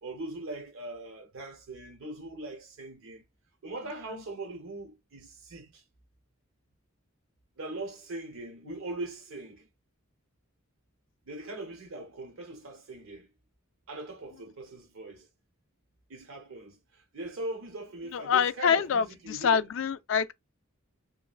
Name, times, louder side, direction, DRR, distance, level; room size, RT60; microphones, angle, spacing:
voice 1, 0.0-3.2 3.6-5.8 7.6-9.7 11.2-13.3 13.9-15.3 16.1-19.6, right 2 dB, 85° right, 0.9 m, -41 dB
voice 2, 18.1-20.3, left 7 dB, 65° left, 0.3 m, -26 dB
3.0 x 2.3 x 2.4 m
head